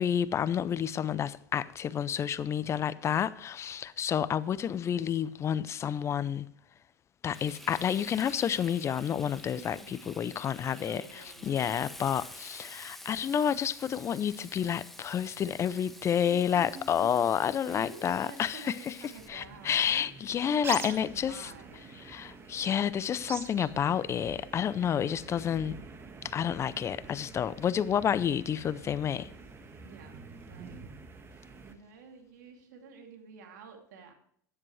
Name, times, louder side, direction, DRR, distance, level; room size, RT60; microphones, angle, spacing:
voice 1, 0.0-6.5 7.2-18.9 19.3-21.5 22.0-25.8 26.2-29.3, left 8 dB, 30° left, 0.5 m, -30 dB
Frying (food), 7.3-19.3, left 1 dB, ahead, 1.2 m, -49 dB
voice 2, 9.5-10.1 10.6-11.6 16.2-17.2 17.6-20.1 20.4-21.9 29.8-30.8 31.6-34.1, right 5 dB, 80° right, 2.6 m, -49 dB
sound 1, 19.2-31.7, right 4 dB, 25° right, 1.4 m, -46 dB
13.0 x 10.0 x 3.2 m
hypercardioid pair, 110°, 10 cm